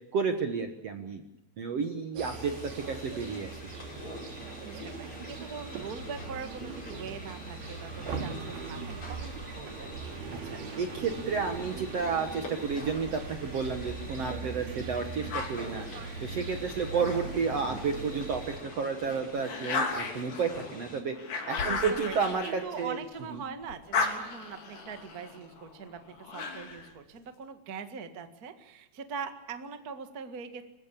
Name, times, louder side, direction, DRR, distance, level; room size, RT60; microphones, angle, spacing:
voice 1, 0.1-1.2 1.6-2.5 2.9-3.6 10.4-15.9 16.2-21.1 21.5-23.0 23.3-23.4, right 5 dB, 55° right, 6 dB, 1.8 m, -31 dB
sound 1, 2.2-21.0, left 2 dB, 35° left, 5.9 m, -46 dB
sound 2, 2.2-18.6, right 5 dB, 75° right, 4.2 m, -40 dB
voice 2, 4.6-10.0 21.6-22.2 22.4-26.0 26.3-30.6, right 6 dB, 40° right, 8 dB, 1.3 m, -42 dB
sound 3, 15.3-18.0 18.5-23.3 23.6-26.9, left 4 dB, 55° left, 4.7 m, -36 dB
26.5 x 16.5 x 8.5 m, 0.97 s
omnidirectional pair, 4.6 m